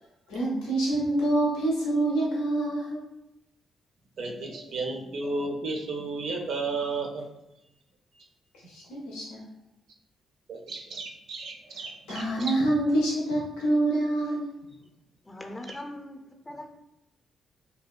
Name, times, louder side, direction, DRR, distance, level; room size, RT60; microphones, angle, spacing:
voice 1, 0.3-3.0 8.6-9.4 12.1-14.5, right 1 dB, 90° left, 0.6 m, -26 dB
voice 2, 4.2-7.3 10.5-12.2, right 3 dB, 70° right, 0.4 m, -33 dB
voice 3, 15.2-16.7, left 1 dB, 25° left, 0.5 m, -41 dB
2.7 x 2.1 x 2.3 m
supercardioid pair, 50°, 0 cm